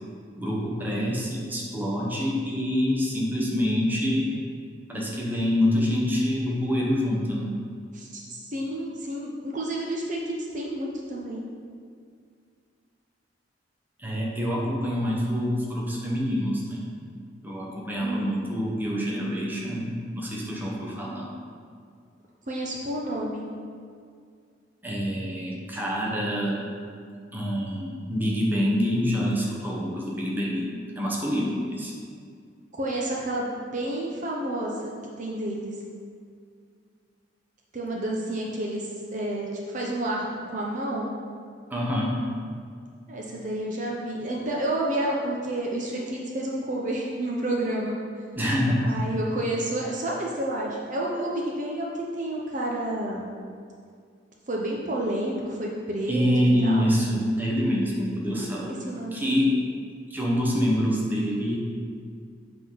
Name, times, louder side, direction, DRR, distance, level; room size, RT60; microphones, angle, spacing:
voice 1, 0.4-4.3 4.9-7.6 14.0-16.9 17.4-21.3 24.8-26.7 27.3-31.9 41.7-42.3 48.4-48.9 56.1-58.7 59.1-59.6 60.1-61.6, equal, 10° right, -4 dB, 1.1 m, -26 dB
voice 2, 7.9-11.4 18.0-18.4 22.5-23.5 32.8-34.9 35.2-35.7 37.7-40.3 40.5-41.1 43.1-48.0 48.8-53.3 54.5-56.9 58.8-59.4, right 1 dB, 40° right, -2 dB, 0.9 m, -30 dB
7.9 x 3.8 x 5.7 m, 2.2 s
head